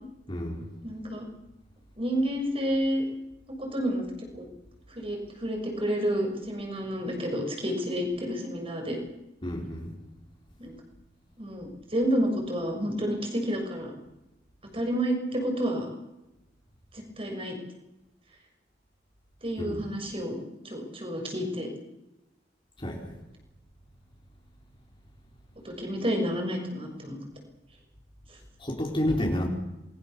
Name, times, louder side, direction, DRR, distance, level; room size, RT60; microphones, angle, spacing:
voice 1, 0.3-0.7 9.4-9.9 19.6-19.8 22.8-23.1 28.6-29.5, left 1 dB, 30° left, 0 dB, 4.2 m, -30 dB
voice 2, 0.8-1.3 2.0-3.0 3.6-4.0 4.3-4.4 4.9-9.0 10.6-10.7 11.4-13.9 14.7-15.9 16.9-17.6 19.4-20.4 20.6-21.7 25.6-27.2 28.3-28.4, equal, 35° right, 3 dB, 6.6 m, -30 dB
28.0 x 22.0 x 7.0 m, 0.95 s
head